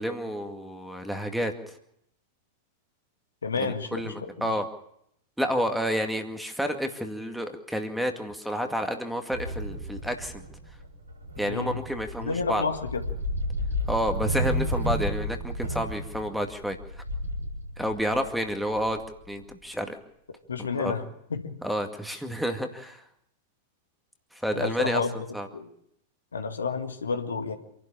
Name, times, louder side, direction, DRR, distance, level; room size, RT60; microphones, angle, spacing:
voice 1, 0.0-1.5 3.5-4.1 4.4-4.7 5.4-10.4 11.4-12.6 13.9-16.8 17.8-19.0 19.3-19.9 20.6-21.0 21.6-23.0 24.3-25.0 25.3-25.5, equal, ahead, 6 dB, 2.1 m, -30 dB
voice 2, 3.4-4.5 11.5-11.8 12.2-13.0 20.5-21.0 21.3-21.6 24.5-25.1 25.5-25.7 26.3-27.5, left 5 dB, 75° left, 6 dB, 1.9 m, -30 dB
sound 1, 9.3-19.5, equal, 85° right, 6.8 m, -32 dB
26.5 x 12.0 x 8.8 m, 0.75 s
figure-of-eight pair, 95°, 0 cm